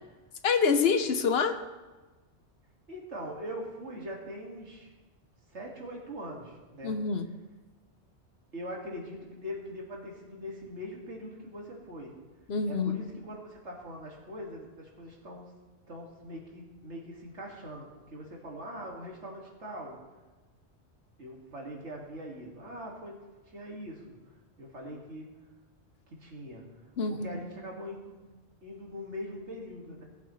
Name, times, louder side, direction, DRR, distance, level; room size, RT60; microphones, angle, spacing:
voice 1, 0.4-1.6 6.8-7.3 12.5-13.0 27.0-27.4, left 5 dB, 65° left, 8 dB, 1.0 m, -26 dB
voice 2, 2.9-4.9 5.5-7.0 8.5-12.2 12.7-15.4 15.9-20.0 21.2-23.2 23.5-24.2 24.6-25.3 26.1-26.6 27.1-28.2 28.6-30.0, equal, 85° right, -1 dB, 2.4 m, -42 dB
18.0 x 8.1 x 3.2 m, 1.2 s
omnidirectional pair, 1.2 m